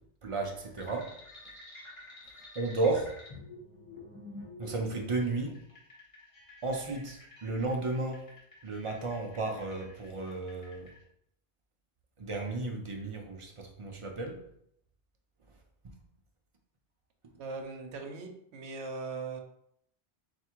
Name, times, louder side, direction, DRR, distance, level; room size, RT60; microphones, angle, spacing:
voice 1, 0.2-1.1 2.6-3.1 4.6-5.6 6.6-8.3 8.6-10.9 12.2-14.4, right 3 dB, 45° right, 2 dB, 0.4 m, -33 dB
sound 1, 0.8-11.0, left 2 dB, 30° left, 1.2 m, -50 dB
voice 2, 17.4-19.4, right 4 dB, 70° right, 4 dB, 0.9 m, -39 dB
3.4 x 2.5 x 4.3 m, 0.72 s
omnidirectional pair, 1.2 m